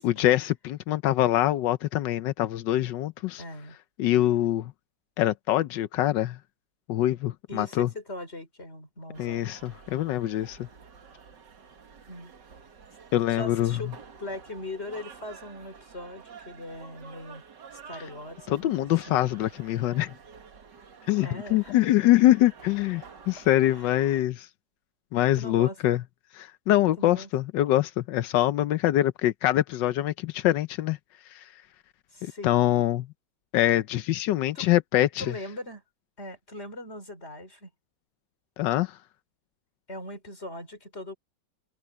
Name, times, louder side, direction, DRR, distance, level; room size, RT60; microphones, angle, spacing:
voice 1, 0.0-3.4 4.0-4.7 5.2-6.4 6.9-7.9 9.2-10.7 13.1-13.8 18.5-20.1 21.1-24.5 25.1-26.0 26.3-31.0 31.3-31.5 32.2-33.0 33.5-35.3 38.6-39.0, left 14 dB, 90° left, 1.4 m, -24 dB
voice 2, 3.4-3.8 7.5-9.5 12.1-12.3 13.3-13.9 14.2-17.4 17.7-19.2 21.2-21.8 23.4-23.5 23.7-23.9 25.3-25.8 27.0-27.3 32.1-32.7 34.5-34.7 35.2-35.8 36.2-37.7 39.9-41.1, left 1 dB, 35° left, 5.7 m, -40 dB
sound 1, 9.1-24.2, right 6 dB, 80° right, 2.4 m, -50 dB
omnidirectional pair, 1.9 m